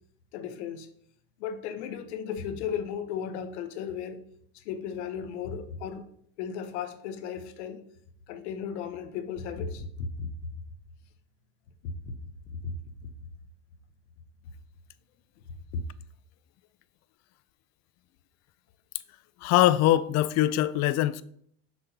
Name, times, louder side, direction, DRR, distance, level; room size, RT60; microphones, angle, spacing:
voice 1, 0.3-0.9 1.4-4.2 4.5-6.1 6.4-7.8 8.3-10.3 11.8-12.1 12.6-12.7 15.7-15.8, left 7 dB, 90° left, 0.8 m, -35 dB
voice 2, 19.4-21.2, left 14 dB, 55° left, 0.4 m, -22 dB
6.8 x 6.0 x 2.8 m
supercardioid pair, 110°, 33 cm